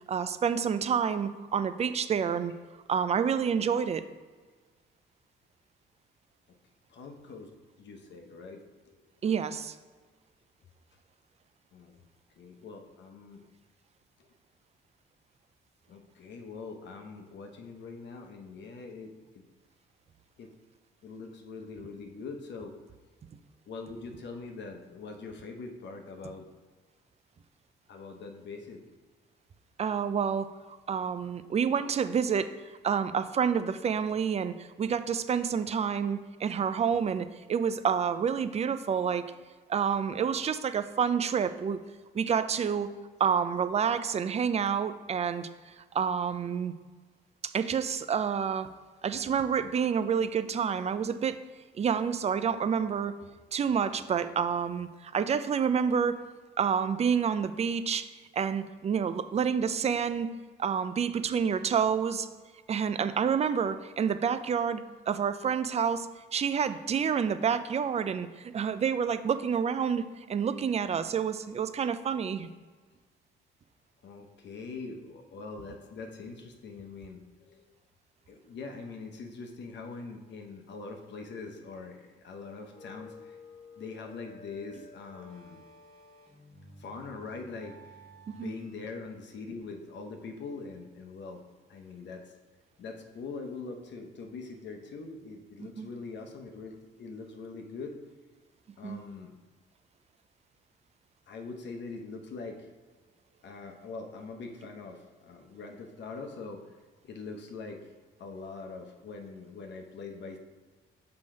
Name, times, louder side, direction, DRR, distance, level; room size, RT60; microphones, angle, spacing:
voice 1, 0.1-2.5 2.9-4.0 9.2-9.8 29.8-30.5 30.9-32.5 32.8-39.2 39.7-41.8 42.1-42.9 43.2-46.7 47.4-48.7 49.0-51.4 51.8-53.1 53.5-56.2 56.6-58.1 58.3-62.3 62.7-72.5 88.3-88.5 95.8-95.9 98.8-99.0, right 7 dB, 35° right, 11 dB, 0.4 m, -28 dB
voice 2, 6.9-7.5 7.8-9.0 11.7-11.9 12.4-13.4 15.9-19.5 20.4-20.5 21.0-22.8 23.7-26.5 27.9-28.8 39.0-39.1 53.2-53.3 74.0-77.8 78.3-83.4 83.8-85.6 86.8-88.1 88.3-91.4 91.7-92.3 92.8-98.0 98.8-99.3 101.3-102.7 103.4-106.7 107.0-107.9 108.2-110.4, left 4 dB, 65° left, 3 dB, 0.9 m, -43 dB
sound 1, 82.4-88.8, left 2 dB, 30° left, 1.5 m, -52 dB
5.8 x 3.9 x 4.9 m, 1.4 s
cardioid pair, 90°, 20 cm